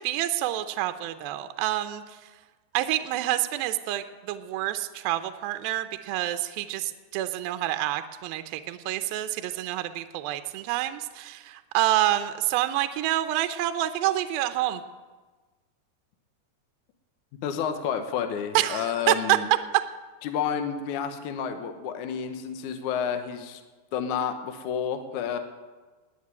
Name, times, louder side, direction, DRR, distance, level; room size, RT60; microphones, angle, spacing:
voice 1, 0.0-2.0 2.7-14.8 18.5-19.4, right 14 dB, 80° right, 9 dB, 2.4 m, -27 dB
voice 2, 17.4-19.5 20.2-23.6 23.9-25.4, left 7 dB, 70° left, 7 dB, 2.0 m, -30 dB
19.5 x 6.7 x 9.6 m, 1.3 s
omnidirectional pair, 4.5 m